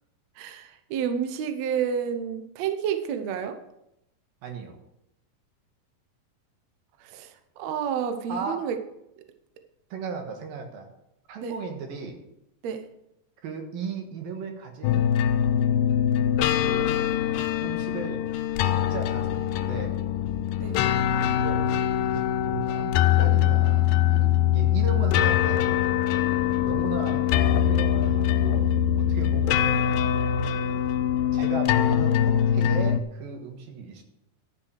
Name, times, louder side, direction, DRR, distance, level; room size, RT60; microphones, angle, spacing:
voice 1, 0.4-3.6 7.0-8.8 11.4-11.5 12.6-12.8 20.6-20.8, right 8 dB, 70° right, 7 dB, 1.7 m, -30 dB
voice 2, 4.4-4.8 8.3-8.6 9.9-10.9 11.3-12.2 13.4-15.1 16.6-17.0 17.6-18.2 18.6-20.0 21.1-21.6 22.0-24.3 24.5-25.8 26.6-29.9 30.5-30.9 31.3-34.0, right 5 dB, 85° right, 3 dB, 3.4 m, -36 dB
sound 1, 14.8-33.0, left 10 dB, 80° left, 2.3 m, -23 dB
12.5 x 6.1 x 6.5 m, 0.84 s
omnidirectional pair, 4.0 m